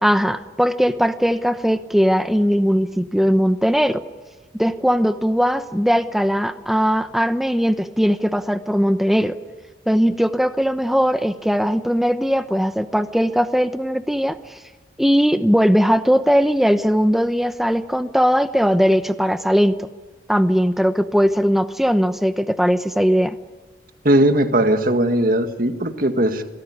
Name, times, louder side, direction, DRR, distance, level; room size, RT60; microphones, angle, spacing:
voice 1, 0.0-4.0 4.6-9.4 9.9-14.4 15.0-19.9 20.3-23.3, equal, ahead, 10 dB, 0.9 m, -19 dB
voice 2, 24.0-26.4, right 1 dB, 45° right, 7 dB, 1.8 m, -18 dB
27.5 x 18.5 x 9.6 m, 1.3 s
head